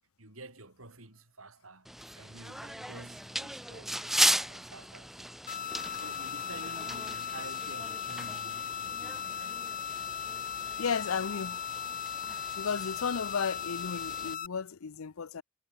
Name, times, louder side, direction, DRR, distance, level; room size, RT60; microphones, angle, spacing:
voice 1, 0.2-1.9 2.2-4.0 4.5-5.4 6.0-9.7, right 2 dB, 75° right, 5.6 m, -49 dB
sound 1, 1.9-14.4, equal, ahead, 1.1 m, -37 dB
sound 2, 5.5-14.5, left 9 dB, 40° left, 1.0 m, -37 dB
voice 2, 10.8-11.6 12.6-15.4, left 6 dB, 85° left, 0.6 m, -33 dB
head